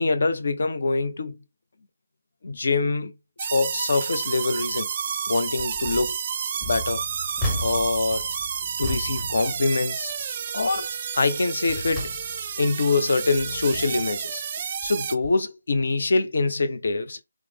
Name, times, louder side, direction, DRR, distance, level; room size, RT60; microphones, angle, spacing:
voice 1, 0.0-1.4 2.4-3.1 3.4-4.9 5.3-6.2 6.6-7.0 7.6-8.3 8.8-10.1 10.5-12.1 12.6-14.4 14.8-17.2, left 3 dB, 60° left, 0.5 m, -24 dB
sound 1, 3.4-15.1, right 7 dB, 35° right, 0.3 m, -30 dB
sound 2, 5.6-6.1 6.6-10.2 10.6-10.9 11.4-12.7 13.2-14.2 14.8-15.0 15.2-15.3, left 1 dB, 20° left, 0.8 m, -35 dB
3.2 x 2.0 x 3.3 m
figure-of-eight pair, 150°, 0 cm